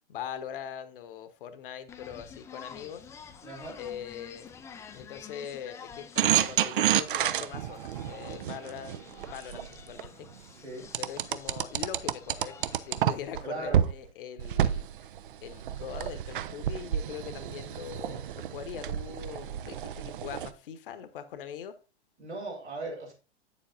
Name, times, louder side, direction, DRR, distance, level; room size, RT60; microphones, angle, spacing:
voice 1, 0.1-3.1 3.8-4.5 4.9-10.3 11.0-15.1 15.4-21.8, left 9 dB, 55° left, 1.1 m, -42 dB
sound 1, 1.9-13.1, left 6 dB, 10° left, 0.4 m, -50 dB
voice 2, 3.4-3.8 10.5-10.9 13.4-13.8 22.2-23.1, right 2 dB, 80° right, 3.4 m, -38 dB
sound 2, 6.2-10.1 10.9-13.4 13.7-13.9 14.4-20.5, right 11 dB, 50° right, 0.6 m, -30 dB
8.7 x 7.1 x 2.6 m
figure-of-eight pair, 95°, 33 cm